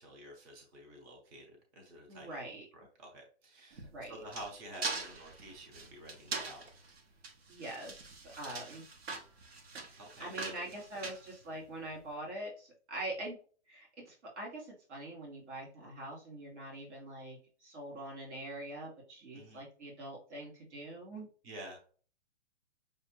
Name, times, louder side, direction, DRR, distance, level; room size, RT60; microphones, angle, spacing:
voice 1, 0.0-2.4 2.7-6.7 10.0-10.7 19.3-19.6 21.4-21.8, right 1 dB, 15° right, 1 dB, 0.7 m, -50 dB
voice 2, 2.1-2.6 3.9-4.2 7.5-8.8 10.2-13.4 13.7-21.3, right 1 dB, 75° right, -3 dB, 2.4 m, -44 dB
sound 1, 3.7-12.0, right 3 dB, 60° right, 1.2 m, -43 dB
6.2 x 2.6 x 3.0 m, 0.40 s
hypercardioid pair, 160°, 35 cm